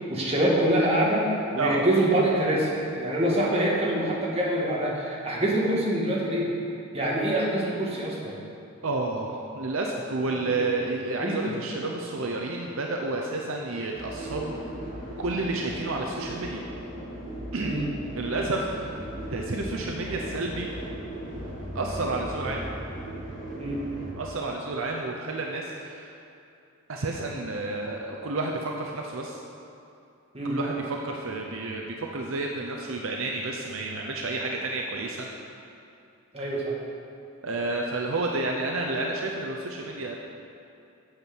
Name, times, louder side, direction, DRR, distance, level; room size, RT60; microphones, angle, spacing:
voice 1, 0.1-1.3 1.5-6.5 6.9-8.4 11.1-11.5 17.6-17.8 22.4-22.5 23.6-23.8 30.3-30.6 36.3-36.7, right 1 dB, 30° right, -4 dB, 1.8 m, -25 dB
voice 2, 8.8-14.6 15.2-16.6 17.5-17.9 18.1-19.0 19.3-20.7 21.7-22.6 24.2-26.2 26.9-29.4 30.4-35.3 36.4-36.5 37.4-40.1, right 2 dB, 65° right, 0 dB, 0.7 m, -30 dB
sound 1, 13.9-24.1, right 1 dB, 35° left, 2.7 m, -37 dB
8.7 x 7.4 x 6.1 m, 2.6 s
head